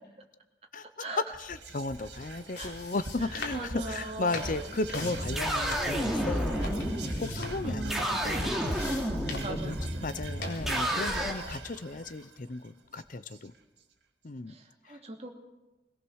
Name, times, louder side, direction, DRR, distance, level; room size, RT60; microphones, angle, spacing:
voice 1, 0.7-1.1 1.3-8.7 9.3-13.5 14.2-14.5 14.9-15.0, left 3 dB, 50° left, 14 dB, 0.7 m, -35 dB
Whispering, 1.3-13.8, right 3 dB, 85° right, 2.3 m, -43 dB
sound 1, 2.0-10.8, left 2 dB, 75° left, 3.9 m, -44 dB
voice 2, 3.5-4.7 7.6-8.3 9.2-10.2 14.5-15.3, right 2 dB, 35° right, 2 dB, 2.5 m, -40 dB
sound 2, 5.0-11.3, equal, ahead, 2.7 m, -31 dB
21.5 x 19.0 x 6.4 m, 1.1 s
head